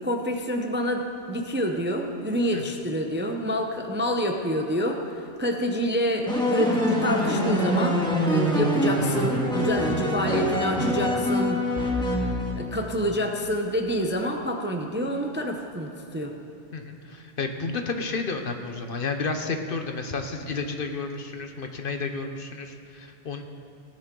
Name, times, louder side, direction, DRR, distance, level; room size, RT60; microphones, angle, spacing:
voice 1, 0.0-11.6 11.9-16.3, equal, 15° right, 3 dB, 0.5 m, -28 dB
sound 1, 6.3-12.9, equal, 5° left, 1.6 m, -25 dB
voice 2, 16.7-23.4, left 4 dB, 55° left, 5 dB, 0.9 m, -31 dB
17.5 x 9.9 x 3.8 m, 2.9 s
omnidirectional pair, 1.2 m